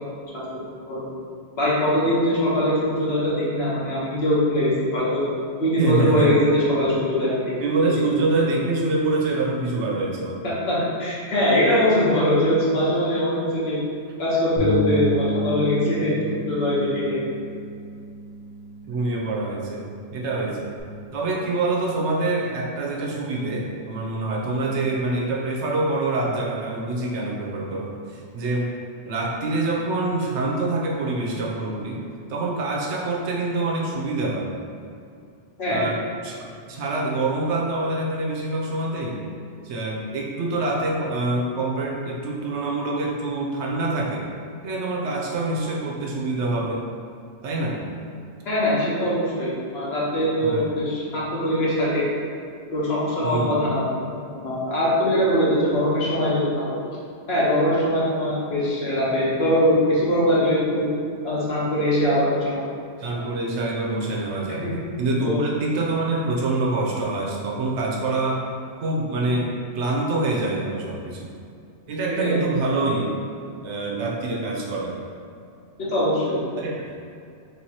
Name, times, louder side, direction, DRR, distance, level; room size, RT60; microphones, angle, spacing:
voice 1, 1.6-5.3 5.6-7.5 7.8-8.0 10.4-13.8 14.2-17.2 35.6-35.8 48.4-52.0 52.7-53.9 54.3-56.7 57.3-60.9 61.2-62.6 63.0-63.1 64.6-64.7 65.2-65.4 72.2-72.4 75.8-76.4, equal, 60° left, -7 dB, 1.2 m, -22 dB
voice 2, 5.8-6.4 7.6-10.5 18.8-19.8 20.1-20.7 21.1-28.7 29.0-32.0 32.3-34.5 35.7-36.4 36.7-39.2 39.6-44.3 44.6-46.8 47.4-47.8 50.4-50.7 53.2-53.6 63.0-64.7 65.0-68.4 68.8-71.3 71.9-73.1 73.6-75.0 76.6-76.9, right 2 dB, 80° right, -1 dB, 1.0 m, -25 dB
Bass guitar, 14.6-20.8, equal, 85° left, 1.5 m, -31 dB
3.3 x 2.8 x 4.6 m, 2.4 s
omnidirectional pair, 1.2 m